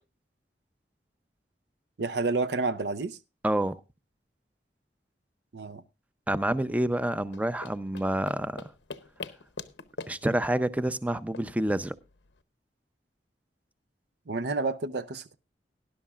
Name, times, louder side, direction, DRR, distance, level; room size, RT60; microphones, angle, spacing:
voice 1, 2.0-3.2 5.5-5.8 14.3-15.3, right 3 dB, 70° right, 0.6 m, -30 dB
voice 2, 3.4-3.8 6.3-8.6 10.1-11.9, right 1 dB, 10° right, 0.6 m, -28 dB
sound 1, 7.2-12.4, left 4 dB, 85° left, 0.8 m, -45 dB
18.5 x 11.0 x 2.4 m
head